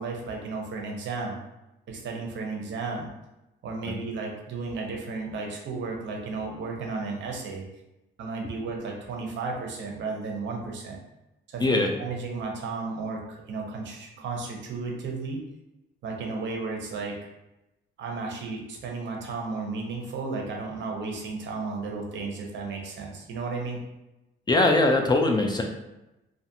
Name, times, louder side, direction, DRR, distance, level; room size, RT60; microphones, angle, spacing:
voice 1, 0.0-1.4 1.9-3.1 3.6-7.6 8.2-11.0 11.5-15.4 16.0-17.2 18.0-23.8, right 4 dB, 65° right, 0 dB, 0.7 m, -33 dB
voice 2, 24.5-25.6, left 2 dB, 20° left, 2 dB, 0.3 m, -21 dB
2.5 x 2.4 x 2.6 m, 0.95 s
cardioid pair, 90°, 20 cm